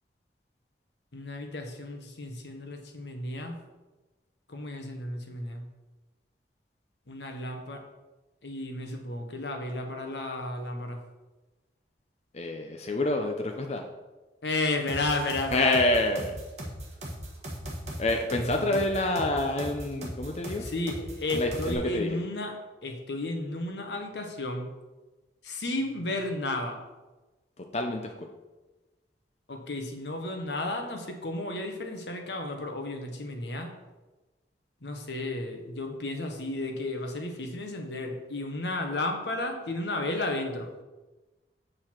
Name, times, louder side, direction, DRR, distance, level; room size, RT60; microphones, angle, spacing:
voice 1, 1.1-3.5 4.5-5.6 7.1-7.8 8.4-11.0 14.4-15.8 18.7-18.8 20.6-22.5 22.8-24.7 25.4-26.8 29.5-33.7 34.8-40.7, left 2 dB, 75° left, 4 dB, 1.2 m, -33 dB
voice 2, 12.3-13.8 15.5-16.4 18.0-20.7 21.3-22.2 27.6-28.3, left 2 dB, 40° left, 3 dB, 0.6 m, -27 dB
sound 1, 14.9-21.7, equal, 40° right, 1.5 m, -38 dB
7.8 x 6.7 x 4.5 m, 1.2 s
head